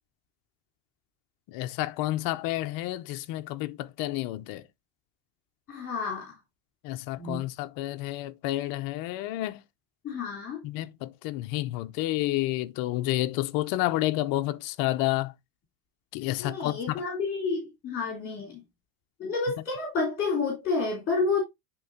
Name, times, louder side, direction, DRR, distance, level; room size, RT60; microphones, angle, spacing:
voice 1, 1.5-4.7 6.8-9.6 10.6-15.3 16.1-17.0, left 16 dB, 45° left, 0.6 m, -30 dB
voice 2, 5.7-6.3 7.2-7.4 10.0-10.6 16.4-18.6 19.2-21.4, left 4 dB, 25° left, 3.2 m, -30 dB
10.0 x 3.8 x 2.7 m
supercardioid pair, 135°, 48 cm